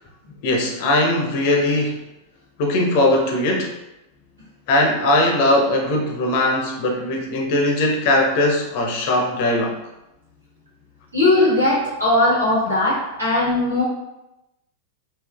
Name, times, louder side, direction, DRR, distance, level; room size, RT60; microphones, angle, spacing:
voice 1, 0.4-2.0 2.6-3.7 4.7-9.8, left 1 dB, 45° left, 2 dB, 0.6 m, -19 dB
voice 2, 11.1-13.8, left 2 dB, 80° right, -8 dB, 1.5 m, -18 dB
3.6 x 2.4 x 2.3 m, 0.94 s
figure-of-eight pair, 90°, 0 cm